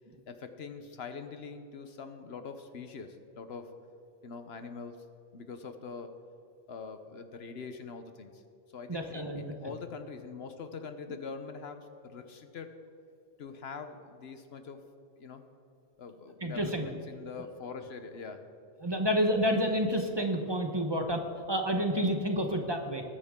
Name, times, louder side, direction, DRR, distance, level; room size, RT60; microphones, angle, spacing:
voice 1, 0.3-3.7 4.2-5.0 5.3-6.1 6.7-8.4 8.7-12.8 13.4-14.8 15.2-15.4 16.0-18.5, left 5 dB, 75° left, 8 dB, 1.2 m, -43 dB
voice 2, 8.9-9.4 16.4-16.8 18.8-21.2 21.5-23.0, equal, 25° right, 4 dB, 1.1 m, -29 dB
21.0 x 9.8 x 3.7 m, 2.7 s
omnidirectional pair, 1.1 m